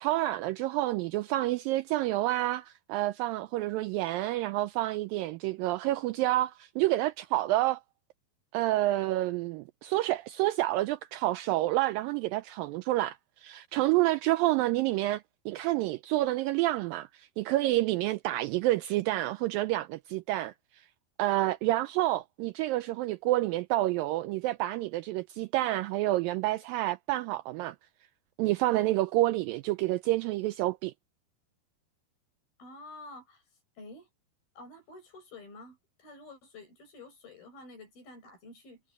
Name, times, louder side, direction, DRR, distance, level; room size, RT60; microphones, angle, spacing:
voice 1, 0.0-7.8 8.5-20.9 21.2-27.8 28.4-30.9, right 17 dB, 90° right, 2.0 m, -29 dB
voice 2, 32.6-33.4 33.8-34.1 34.6-38.8, left 2 dB, 65° left, 9.1 m, -49 dB
omnidirectional pair, 4.6 m